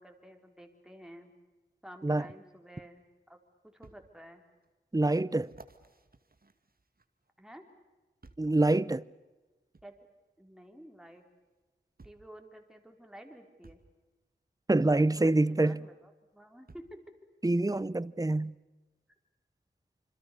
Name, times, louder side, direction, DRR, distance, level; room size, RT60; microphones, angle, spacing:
voice 1, 0.0-1.3 1.8-4.4 7.4-7.6 9.8-9.9 10.4-11.3 12.0-13.8 15.1-17.0, equal, 5° right, 4.4 m, -51 dB
sound 1, 3.8-4.0 4.6-4.7 5.4-7.3 8.2-8.6 9.7-9.9 11.2-11.3 12.0-12.3 13.6-13.9 15.5-15.6 16.7-17.0 17.8-17.9, right 3 dB, 50° right, 2.2 m, -56 dB
voice 2, 4.9-5.5 8.4-9.0 14.7-15.9 17.4-18.5, right 2 dB, 20° right, 0.7 m, -26 dB
27.0 x 26.0 x 6.9 m
wide cardioid pair, 60°, 19 cm